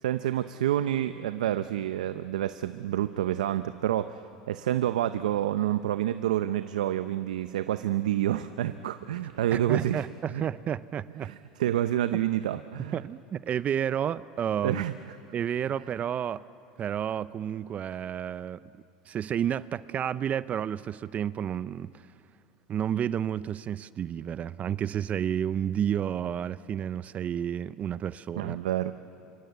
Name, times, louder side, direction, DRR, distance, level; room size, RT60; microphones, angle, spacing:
voice 1, 0.0-4.2 4.5-10.0 10.3-10.4 11.2-13.0 14.6-14.9 28.4-29.0, right 12 dB, 90° right, 11 dB, 0.6 m, -28 dB
voice 2, 9.5-11.3 12.1-12.2 12.9-14.8 15.3-16.4 16.8-18.6 19.1-21.9 22.7-28.6, right 9 dB, 35° right, 17 dB, 0.5 m, -31 dB
27.0 x 24.5 x 8.2 m, 2.7 s
supercardioid pair, 100°, 4 cm